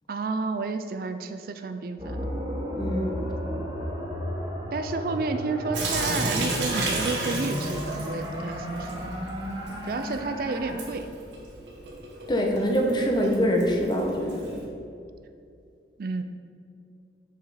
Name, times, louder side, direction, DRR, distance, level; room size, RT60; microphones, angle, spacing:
voice 1, 0.1-2.3 4.7-8.9 9.8-11.1 16.0-16.2, right 3 dB, 55° right, 8 dB, 0.4 m, -31 dB
sound 1, 2.0-10.8, equal, 25° right, 1.4 m, -33 dB
voice 2, 2.8-3.2 12.3-14.5, equal, 25° left, 1 dB, 0.9 m, -24 dB
Sink (filling or washing) / Drip, 5.7-14.6, right 2 dB, 90° right, 1.3 m, -34 dB
7.1 x 5.9 x 4.9 m, 2.5 s
head